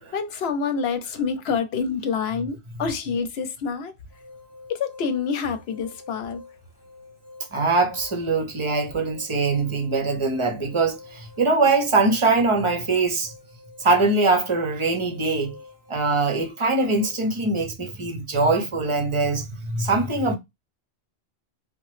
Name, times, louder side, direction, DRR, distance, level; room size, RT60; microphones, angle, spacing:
voice 1, 0.1-3.9 4.7-6.4, left 5 dB, 80° left, 0.9 m, -27 dB
sound 1, 4.1-17.1, left 3 dB, 25° left, 0.9 m, -48 dB
voice 2, 7.5-13.3 13.8-15.6 15.9-20.4, right 3 dB, 35° right, 0.6 m, -22 dB
2.9 x 2.1 x 3.0 m
omnidirectional pair, 1.1 m